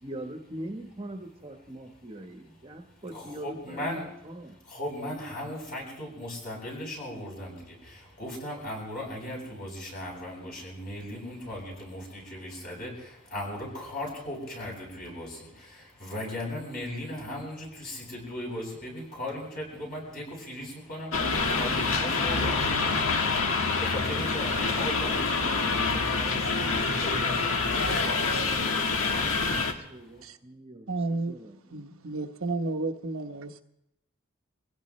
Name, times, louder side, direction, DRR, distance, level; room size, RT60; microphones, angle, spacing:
voice 1, 0.0-4.5 29.4-30.9 31.3-31.6, right 1 dB, 30° right, 4 dB, 1.2 m, -42 dB
voice 2, 2.7-4.1 4.4-30.0, left 1 dB, 45° left, -2 dB, 8.0 m, -38 dB
sound 1, 21.1-29.7, left 4 dB, 85° left, 1.5 m, -26 dB
voice 3, 30.9-31.4 31.7-33.6, right 3 dB, 85° right, 5 dB, 1.0 m, -32 dB
25.5 x 16.5 x 3.2 m, 0.81 s
head